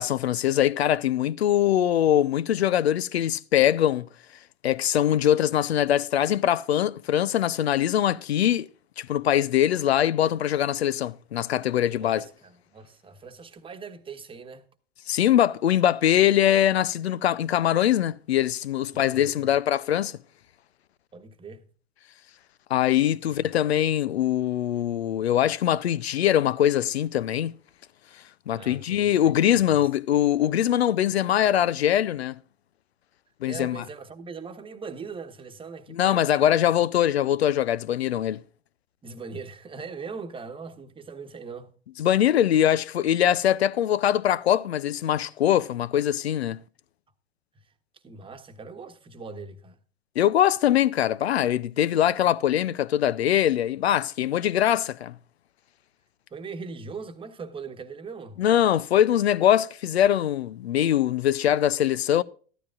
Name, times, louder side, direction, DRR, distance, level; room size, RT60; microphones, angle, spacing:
voice 1, 0.0-4.1 4.6-8.7 9.0-12.2 15.1-20.1 22.7-27.5 28.5-32.4 33.4-33.8 35.9-38.4 42.0-46.6 50.2-55.2 58.4-62.2, left 11 dB, 85° left, 0.6 m, -22 dB
voice 2, 11.9-14.6 18.9-19.6 21.1-21.7 23.4-23.5 28.5-29.9 33.5-36.8 39.0-41.7 48.0-49.8 56.3-58.4, right 4 dB, 15° right, 1.1 m, -40 dB
14.0 x 12.5 x 2.4 m
hypercardioid pair, 95°, 31 cm